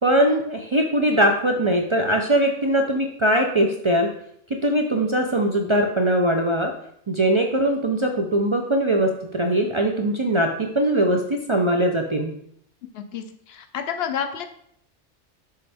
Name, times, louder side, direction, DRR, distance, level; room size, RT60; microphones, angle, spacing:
voice 1, 0.0-4.1 4.6-6.7 7.1-12.4, right 1 dB, 45° right, 2 dB, 0.4 m, -21 dB
voice 2, 12.9-14.4, left 8 dB, 65° left, 7 dB, 0.8 m, -30 dB
6.6 x 4.3 x 3.4 m, 0.69 s
omnidirectional pair, 1.2 m